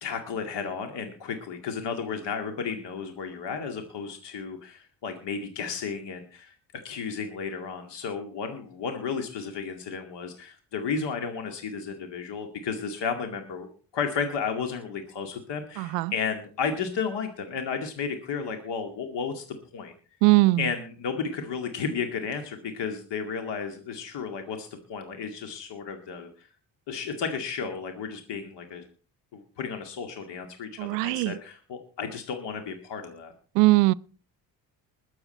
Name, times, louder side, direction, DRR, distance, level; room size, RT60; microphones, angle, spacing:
voice 1, 0.0-6.5 6.8-13.7 13.9-19.9 20.6-26.5 26.9-28.8 29.3-33.3, left 5 dB, 65° left, 2.2 m, -33 dB
voice 2, 15.8-16.1 20.2-20.7 30.8-31.4 33.5-33.9, right 21 dB, 85° right, 0.5 m, -21 dB
21.0 x 7.8 x 4.3 m
hypercardioid pair, 50°, 46 cm